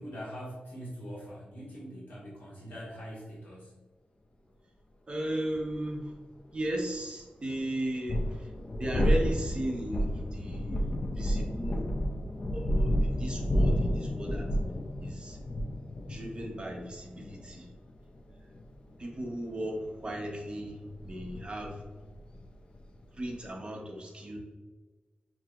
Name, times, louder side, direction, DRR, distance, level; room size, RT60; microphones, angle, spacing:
voice 1, 0.0-3.8, equal, 85° left, -7 dB, 1.4 m, -43 dB
voice 2, 5.1-6.1 6.5-8.5 8.8-11.9 12.5-14.5 15.0-15.4 16.1-17.7 18.4-18.5 19.0-21.8 23.2-24.4, right 1 dB, 35° right, 0 dB, 0.9 m, -36 dB
sound 1, 5.7-5.8 7.9-23.5, equal, 35° left, 0.4 m, -31 dB
5.7 x 2.9 x 2.3 m, 1.3 s
wide cardioid pair, 130°, 3 cm